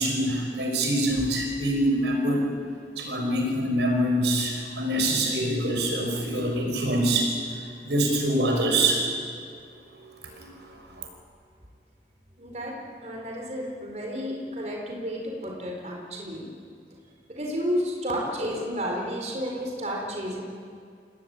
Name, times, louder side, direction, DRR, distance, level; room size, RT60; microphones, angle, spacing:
voice 1, 0.0-2.5 3.0-9.1 10.2-11.1, right 1 dB, 80° right, 2 dB, 6.2 m, -25 dB
voice 2, 12.4-12.8 13.0-16.5 17.3-20.4, equal, 40° right, -1 dB, 4.5 m, -31 dB
28.0 x 19.5 x 9.7 m, 2.2 s
head